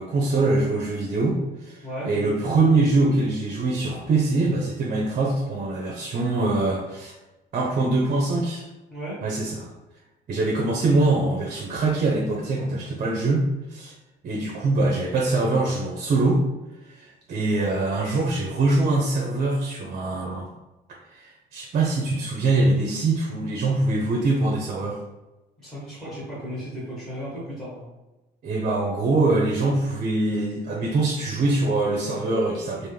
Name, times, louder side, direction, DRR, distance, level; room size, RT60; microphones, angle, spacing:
voice 1, 0.0-1.8 2.0-7.1 7.5-8.7 9.2-9.7 10.3-13.9 14.2-16.4 16.8-20.5 21.1-25.0 28.4-32.9, right 2 dB, 50° right, -1 dB, 0.8 m, -23 dB
voice 2, 1.8-2.1 8.9-9.2 25.6-27.8, equal, 5° left, -9 dB, 1.5 m, -35 dB
3.6 x 2.6 x 3.3 m, 1.1 s
cardioid pair, 110°, 17 cm